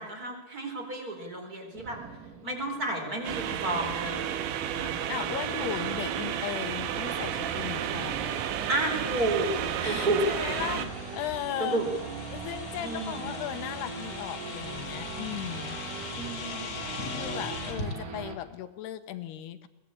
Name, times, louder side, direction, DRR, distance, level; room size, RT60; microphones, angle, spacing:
voice 1, 0.0-2.0 2.4-4.4 4.7-5.4 8.7-9.5 9.8-10.2 11.6-11.9 12.7-13.3 16.1-17.1 17.5-18.0, right 2 dB, 20° right, 3 dB, 3.9 m, -32 dB
Race car auto racing / Idling / Accelerating revving vroom, 1.8-18.4, right 5 dB, 50° right, 3.3 m, -41 dB
sound 1, 3.2-10.9, right 10 dB, 80° right, 3.6 m, -32 dB
voice 2, 5.1-8.4 9.8-11.8 12.3-15.8 17.1-19.7, left 11 dB, 75° left, 10 dB, 2.7 m, -37 dB
sound 2, 9.2-17.9, left 4 dB, 40° left, 2.3 m, -41 dB
22.0 x 19.5 x 8.5 m, 0.97 s
omnidirectional pair, 5.3 m